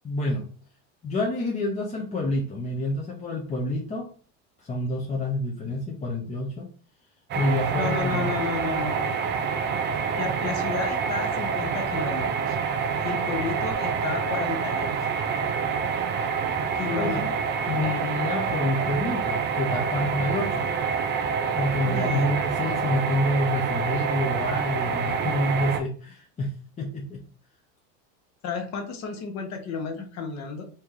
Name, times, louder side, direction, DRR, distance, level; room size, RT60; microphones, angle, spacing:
voice 1, 0.0-0.4 1.0-4.1 4.6-6.7 7.3-8.3 16.9-17.3 17.7-20.7 21.6-27.2, left 1 dB, 20° left, -1 dB, 0.7 m, -28 dB
sound 1, 7.3-25.8, right 6 dB, 30° right, 0.5 m, -27 dB
voice 2, 7.8-9.2 10.2-12.6 13.0-15.1 16.7-17.5 21.8-22.4 28.4-30.6, left 5 dB, 45° left, 5 dB, 1.0 m, -32 dB
3.1 x 2.9 x 3.6 m, 0.40 s
supercardioid pair, 120°, 37 cm